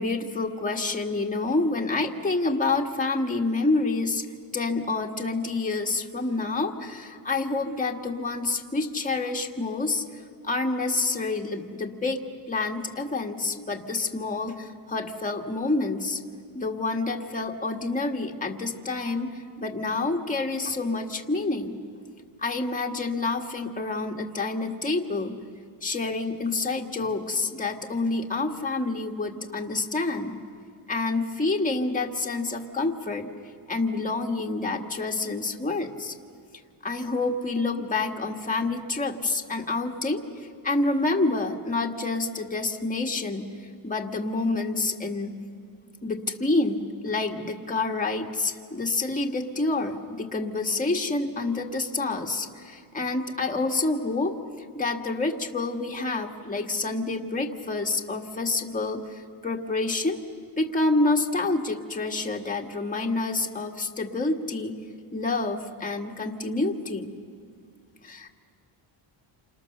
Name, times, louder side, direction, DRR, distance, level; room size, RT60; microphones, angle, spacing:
voice 1, 0.0-4.2 4.5-10.0 10.4-12.2 12.5-16.2 16.5-21.8 22.4-25.4 25.8-30.4 30.9-33.3 33.7-36.1 36.8-43.5 43.8-45.4 46.0-60.2 60.6-64.8 65.1-67.1 68.0-68.3, left 3 dB, 15° left, 2 dB, 1.7 m, -28 dB
28.5 x 27.5 x 6.7 m, 2.2 s
cardioid pair, 120°, 49 cm